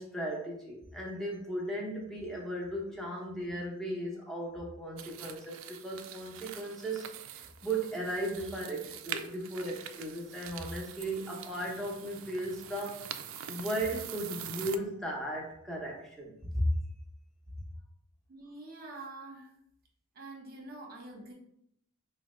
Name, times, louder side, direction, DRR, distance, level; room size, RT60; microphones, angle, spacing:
voice 1, 0.0-7.1 7.3-16.6, right 1 dB, ahead, -3 dB, 0.8 m, -36 dB
sound 1, 5.0-14.8, right 10 dB, 75° right, 0.3 m, -44 dB
voice 2, 18.3-19.5 20.1-21.3, right 2 dB, 45° right, 0 dB, 0.8 m, -46 dB
4.6 x 2.1 x 3.0 m, 0.74 s
head